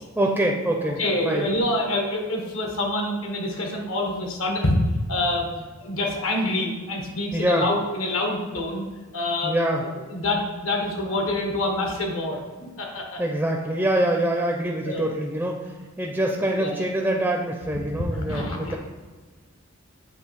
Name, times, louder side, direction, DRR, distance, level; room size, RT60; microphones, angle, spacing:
voice 1, 0.2-1.5 7.3-7.7 9.4-9.8 13.2-15.6 16.0-18.8, right 1 dB, 10° right, 0 dB, 0.5 m, -24 dB
voice 2, 0.8-4.8 5.1-5.5 5.8-8.9 9.1-9.5 10.1-13.2 14.8-15.1 16.5-16.8 18.1-18.8, left 1 dB, 75° left, 2 dB, 1.2 m, -26 dB
7.5 x 3.1 x 4.6 m, 1.4 s
head